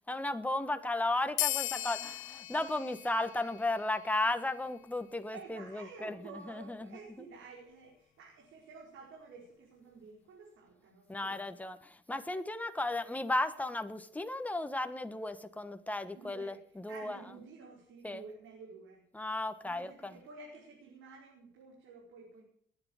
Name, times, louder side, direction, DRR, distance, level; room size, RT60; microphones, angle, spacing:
voice 1, 0.1-7.3 11.1-17.4 18.0-18.2 19.1-20.2, left 2 dB, 5° left, 9 dB, 1.4 m, -35 dB
sound 1, 1.4-4.4, left 14 dB, 80° left, 1.0 m, -37 dB
voice 2, 1.8-2.1 5.3-11.6 16.1-19.0 19.6-22.4, right 4 dB, 85° right, -2 dB, 4.8 m, -52 dB
20.0 x 9.8 x 7.3 m, 0.63 s
cardioid pair, 90°, 20 cm